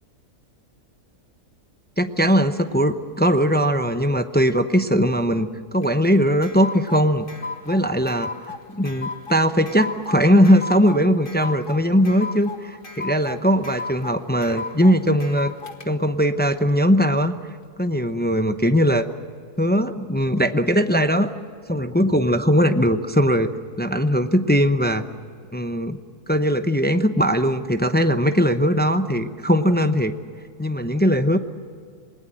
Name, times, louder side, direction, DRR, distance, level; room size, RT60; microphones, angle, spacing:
voice 1, 2.0-7.3 7.7-15.5 15.8-17.4 17.8-19.0 19.6-21.3 21.7-25.0 25.5-26.0 26.3-30.1 30.6-31.4, equal, 15° left, 8 dB, 0.4 m, -20 dB
sound 1, 5.8-15.9, left 4 dB, 35° left, 1.7 m, -35 dB
28.0 x 20.0 x 7.7 m, 2.1 s
omnidirectional pair, 1.7 m